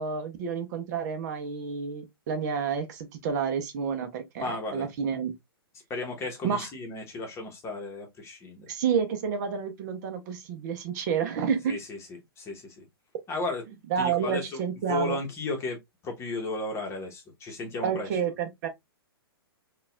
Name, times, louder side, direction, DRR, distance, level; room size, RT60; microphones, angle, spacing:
voice 1, 0.0-5.3 6.4-6.7 8.7-11.7 13.9-15.2 17.8-18.7, right 7 dB, 45° right, 0.7 m, -29 dB
voice 2, 4.4-4.9 5.9-8.7 11.7-12.0 12.4-12.8 13.3-14.6 14.9-18.1, left 2 dB, 20° left, 1.1 m, -34 dB
3.9 x 2.4 x 2.3 m
hypercardioid pair, 125°, 13 cm